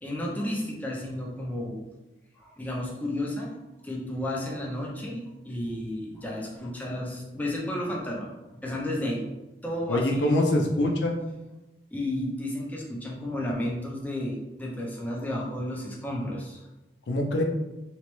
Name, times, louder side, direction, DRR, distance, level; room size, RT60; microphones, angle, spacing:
voice 1, 0.0-1.8 2.4-3.6 3.8-8.3 8.6-9.2 9.6-10.7 11.9-16.7, left 1 dB, 10° left, -3 dB, 0.5 m, -32 dB
voice 2, 9.9-11.2 17.1-17.4, left 1 dB, 85° left, 2 dB, 0.5 m, -24 dB
3.0 x 2.1 x 3.0 m, 1.0 s
head